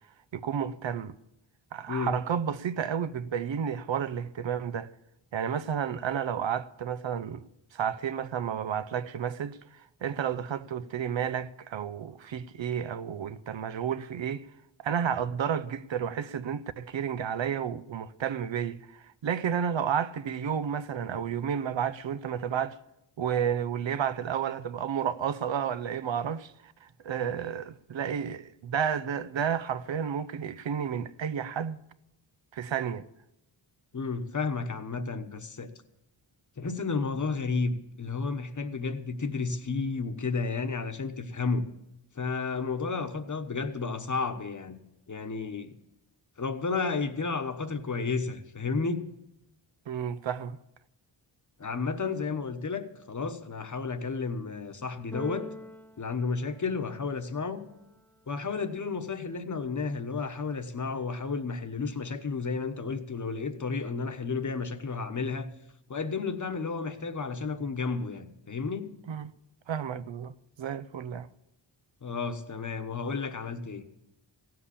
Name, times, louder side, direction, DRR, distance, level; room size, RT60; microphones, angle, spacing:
voice 1, 0.3-1.1 1.7-4.9 5.3-7.4 7.7-14.5 14.8-22.8 23.2-31.8 32.5-33.1 49.9-50.6 69.1-69.3 69.7-71.3, right 8 dB, 70° right, 0.7 m, -31 dB
voice 2, 33.9-35.7 36.6-41.7 42.1-44.8 45.1-45.7 46.4-49.0 51.6-55.5 56.0-57.7 58.3-65.5 65.9-68.9 72.0-73.8, left 4 dB, 40° left, 1.1 m, -32 dB
Keyboard (musical), 55.1-57.2, left 1 dB, 5° left, 0.4 m, -44 dB
16.5 x 7.8 x 8.4 m
wide cardioid pair, 125°, 47 cm